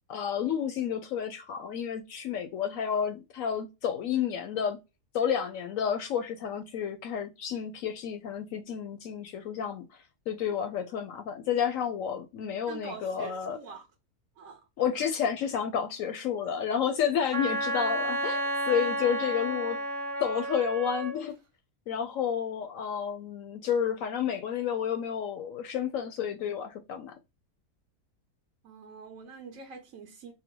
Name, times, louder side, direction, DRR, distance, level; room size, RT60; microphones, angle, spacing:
voice 1, 0.1-4.8 5.1-9.9 10.3-13.6 14.8-19.8 20.2-21.3 21.9-27.1, left 8 dB, 70° left, 0.8 m, -30 dB
voice 2, 12.7-13.9 14.4-14.6 28.6-30.3, right 5 dB, 60° right, 1.2 m, -45 dB
Wind instrument woodwind instrument, 17.3-21.2, right 1 dB, 45° right, 0.9 m, -31 dB
4.3 x 2.0 x 3.7 m
omnidirectional pair, 1.7 m